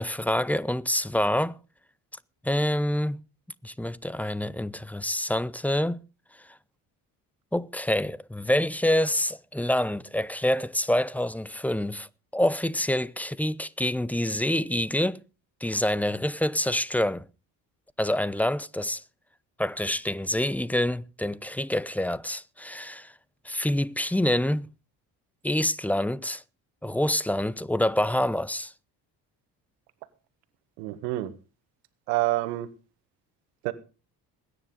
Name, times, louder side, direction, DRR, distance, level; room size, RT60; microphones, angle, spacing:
voice 1, 0.0-1.6 2.4-3.2 3.6-6.0 7.5-15.2 15.6-17.2 18.0-19.0 19.6-23.1 23.4-24.7 25.4-26.4 26.8-28.7, left 1 dB, 5° left, 0.7 m, -26 dB
voice 2, 30.8-31.3 32.1-32.7 33.6-33.7, right 18 dB, 90° right, 1.5 m, -27 dB
21.0 x 9.9 x 3.8 m
hypercardioid pair, 60°, 47 cm